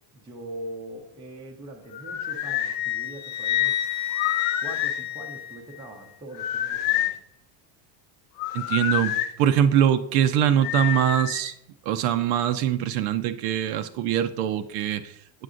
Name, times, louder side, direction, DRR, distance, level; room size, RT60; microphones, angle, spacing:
voice 1, 0.1-3.8 4.6-7.2, right 1 dB, 10° right, -1 dB, 0.5 m, -41 dB
sound 1, 1.9-2.8 4.1-5.0 6.3-7.2 8.4-9.3 10.6-11.5, left 12 dB, 75° left, 0.7 m, -28 dB
Wind instrument woodwind instrument, 2.4-5.9, left 13 dB, 35° left, 0.7 m, -28 dB
voice 2, 8.5-11.5 11.9-15.1, right 10 dB, 75° right, 10 dB, 0.6 m, -23 dB
7.8 x 6.6 x 2.5 m, 0.75 s
cardioid pair, 145°, 49 cm